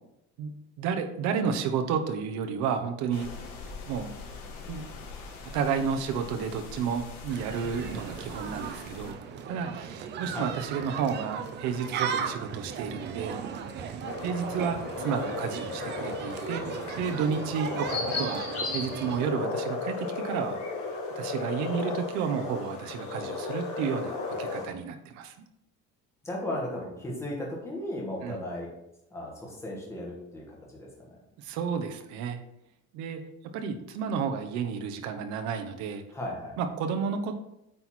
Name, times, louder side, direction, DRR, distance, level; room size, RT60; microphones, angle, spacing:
voice 1, 0.4-3.3 3.9-4.1 4.7-4.8 5.5-9.2 9.5-13.4 13.8-14.0 14.2-16.6 17.0-18.5 18.7-20.6 21.2-25.3 28.2-28.4 31.4-32.4 32.9-33.2 33.5-36.0 36.6-37.3, right 6 dB, 60° right, 6 dB, 1.0 m, -31 dB
sound 1, 3.1-9.1, left 4 dB, 65° left, 1.8 m, -43 dB
sound 2, 7.3-19.3, right 7 dB, 35° right, 0.6 m, -37 dB
sound 3, 14.0-24.6, left 3 dB, 45° left, 1.8 m, -35 dB
voice 2, 26.2-28.7 29.1-31.2 36.1-36.6, left 1 dB, 10° left, -3 dB, 1.7 m, -36 dB
8.7 x 4.3 x 4.4 m, 0.84 s
cardioid pair, 175°, 33 cm